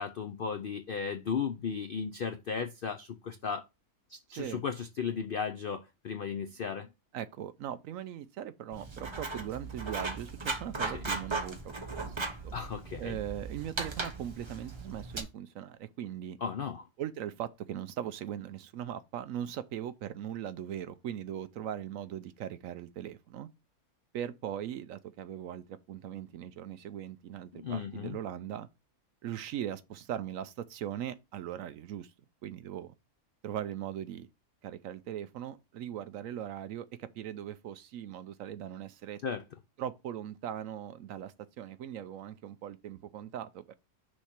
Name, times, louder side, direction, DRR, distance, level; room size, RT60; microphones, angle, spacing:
voice 1, 0.0-3.6 4.1-6.9 12.1-12.2 12.5-13.2 16.4-16.8 27.5-28.2 39.2-39.4, left 6 dB, 85° left, 0.4 m, -35 dB
voice 2, 4.3-4.6 7.1-11.6 11.9-12.5 13.0-16.4 17.0-23.5 24.1-28.7 29.2-32.1 32.4-32.9 33.4-34.3 34.6-39.2 39.8-43.7, right 10 dB, 70° right, 0.8 m, -39 dB
Writing, 8.7-15.2, right 3 dB, 25° right, 0.6 m, -37 dB
6.3 x 3.1 x 5.8 m
omnidirectional pair, 1.6 m